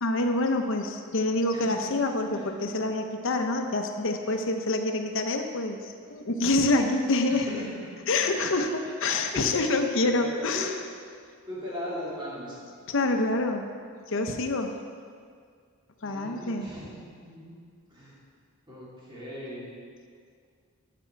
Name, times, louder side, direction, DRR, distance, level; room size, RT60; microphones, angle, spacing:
voice 1, 0.0-7.5 8.1-10.8 12.9-13.7 14.1-14.7 16.0-16.7, left 2 dB, 60° left, 5 dB, 0.8 m, -26 dB
voice 2, 1.5-1.9 2.3-2.5 7.3-7.9 9.3-9.6 10.0-10.8 11.5-12.6 16.0-17.5 17.9-18.2 18.7-19.7, left 1 dB, 20° right, -8 dB, 2.7 m, -38 dB
11.5 x 6.0 x 4.6 m, 2.1 s
head